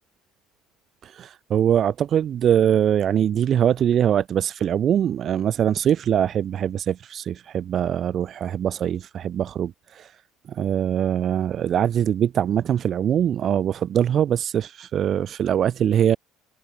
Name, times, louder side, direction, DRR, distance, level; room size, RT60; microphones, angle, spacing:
voice 1, 1.0-10.1 10.5-16.2, right 9 dB, 40° right, 5.1 m, -22 dB
cardioid pair, 125°, 0 cm